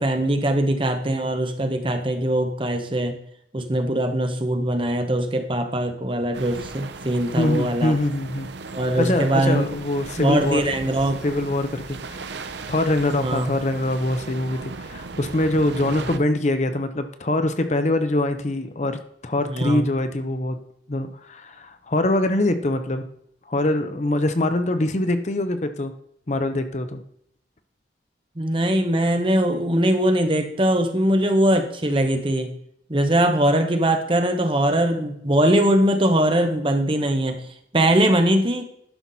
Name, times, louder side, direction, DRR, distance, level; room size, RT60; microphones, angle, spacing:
voice 1, 0.0-3.2 3.5-7.9 8.7-9.7 10.2-11.2 13.2-13.5 19.5-19.9 28.4-32.5 32.9-37.5 37.7-38.6, right 1 dB, 30° right, 6 dB, 1.0 m, -21 dB
sound 1, 6.3-16.2, right 4 dB, 70° right, 0.7 m, -37 dB
voice 2, 7.4-8.5 9.0-10.6 11.2-12.2 12.7-20.6 20.9-23.0 23.5-25.9 26.3-27.0, left 1 dB, 40° left, 9 dB, 0.7 m, -23 dB
11.5 x 5.8 x 4.1 m, 0.70 s
head